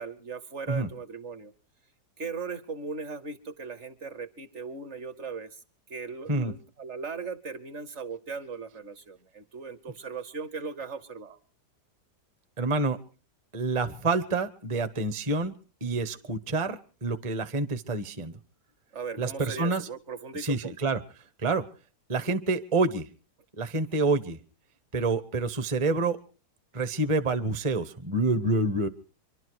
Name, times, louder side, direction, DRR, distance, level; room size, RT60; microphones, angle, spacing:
voice 1, 0.0-1.5 2.2-5.6 5.9-11.4 18.9-20.7, right 4 dB, 50° right, 12 dB, 1.1 m, -38 dB
voice 2, 12.6-13.0 13.5-15.6 15.8-18.4 19.2-19.9 20.3-21.0 21.4-21.7 22.1-23.1 23.6-24.4 24.9-26.2 26.7-28.9, right 3 dB, 30° right, 10 dB, 0.6 m, -27 dB
25.5 x 12.0 x 4.7 m, 0.37 s
omnidirectional pair, 1.8 m